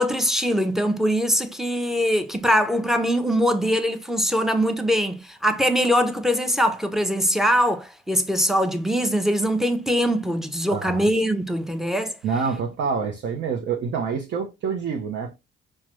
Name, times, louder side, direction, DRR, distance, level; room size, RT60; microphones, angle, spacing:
voice 1, 0.0-12.1, equal, ahead, 0.6 m, -22 dB
voice 2, 10.7-11.1 12.2-15.4, right 5 dB, 65° right, 0.6 m, -27 dB
4.7 x 2.1 x 3.0 m
cardioid pair, 90°, 20 cm